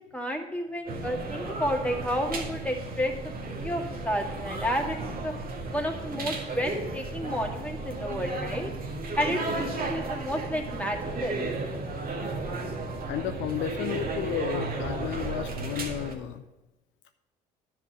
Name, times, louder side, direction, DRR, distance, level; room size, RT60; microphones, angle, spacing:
voice 1, 0.1-5.3 5.7-8.7 9.2-11.4, equal, 5° left, 1 dB, 2.1 m, -31 dB
sound 1, 0.9-16.1, right 3 dB, 45° right, 1.8 m, -34 dB
voice 2, 13.1-16.4, left 12 dB, 60° left, 8 dB, 0.6 m, -33 dB
10.5 x 4.9 x 8.1 m, 1.0 s
hypercardioid pair, 60°, 21 cm